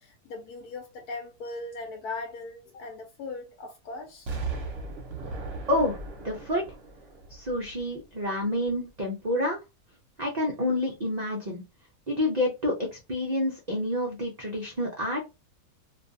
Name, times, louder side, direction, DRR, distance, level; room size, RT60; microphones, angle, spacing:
voice 1, 0.0-4.3, left 3 dB, 75° left, 1.1 m, -39 dB
Explosion, 4.3-8.2 8.6-8.7, right 3 dB, 50° right, 0.8 m, -37 dB
voice 2, 6.2-6.6 7.3-9.6 10.2-11.6 12.1-15.2, left 1 dB, 75° right, 0.3 m, -28 dB
2.5 x 2.3 x 2.6 m
omnidirectional pair, 1.6 m